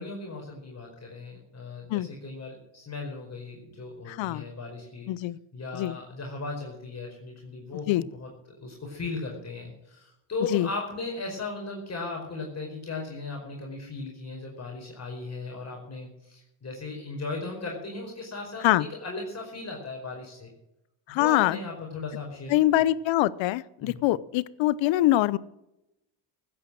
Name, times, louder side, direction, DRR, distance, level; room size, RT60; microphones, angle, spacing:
voice 1, 0.0-5.1 5.5-8.3 8.6-20.5 21.1-22.5 23.8-24.0, left 3 dB, 35° left, 0 dB, 4.9 m, -37 dB
voice 2, 4.1-4.5 5.1-5.4 5.7-6.0 7.9-8.0 10.5-10.7 18.6-18.9 21.1-21.6 22.5-25.4, left 15 dB, 70° left, 20 dB, 0.8 m, -24 dB
15.5 x 8.8 x 7.5 m, 0.87 s
supercardioid pair, 85°, 47 cm